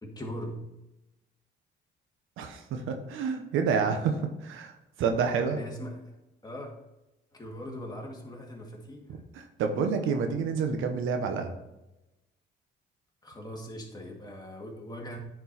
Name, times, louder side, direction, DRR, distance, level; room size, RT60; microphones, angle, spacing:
voice 1, 0.0-0.6 5.5-6.1 6.4-6.8 7.3-9.2 13.2-15.2, equal, 20° left, 0 dB, 2.0 m, -40 dB
voice 2, 2.4-5.6 9.3-11.6, right 5 dB, 85° right, 5 dB, 0.9 m, -29 dB
9.7 x 4.5 x 4.1 m, 0.96 s
cardioid pair, 90°, 20 cm